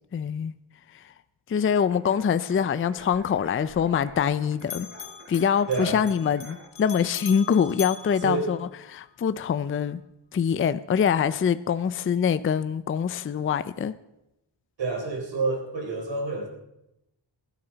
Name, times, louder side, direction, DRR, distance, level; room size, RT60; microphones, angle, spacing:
voice 1, 0.1-0.5 0.9-1.0 1.5-4.9 5.3-8.6 8.9-10.0 10.3-13.9, left 7 dB, 30° left, 15 dB, 0.4 m, -24 dB
sound 1, 1.7-6.7, right 2 dB, 30° right, 2.4 m, -49 dB
Bell, 3.0-4.3 4.6-9.1, left 9 dB, 65° left, 1.0 m, -42 dB
voice 2, 5.7-6.0 8.2-8.5 14.8-16.5, right 3 dB, 65° right, 2 dB, 3.8 m, -28 dB
19.5 x 12.5 x 4.0 m, 0.88 s
wide cardioid pair, 115°, 46 cm